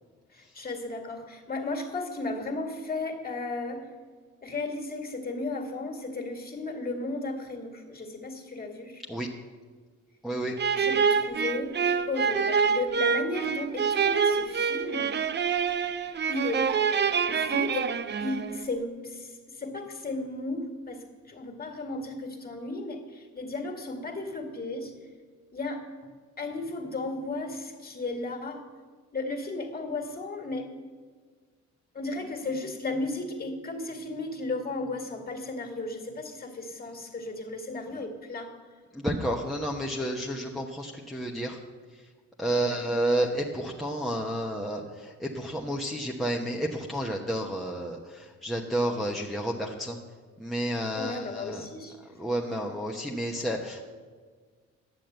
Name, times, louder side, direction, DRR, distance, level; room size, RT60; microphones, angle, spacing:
voice 1, 0.3-3.9 4.4-9.0 10.7-11.7 12.1-15.4 16.3-16.7 17.3-17.9 18.2-24.9 25.5-26.1 26.4-28.6 29.1-30.7 31.9-38.5 42.5-42.8 50.9-52.0, left 2 dB, 30° left, 4 dB, 2.1 m, -34 dB
voice 2, 10.2-10.6 38.9-41.6 42.4-50.0 50.4-51.6 52.1-53.8, right 1 dB, ahead, -2 dB, 1.0 m, -30 dB
sound 1, 10.6-18.6, right 6 dB, 35° right, 0.6 m, -26 dB
10.5 x 7.3 x 7.9 m, 1.5 s
cardioid pair, 90°, 30 cm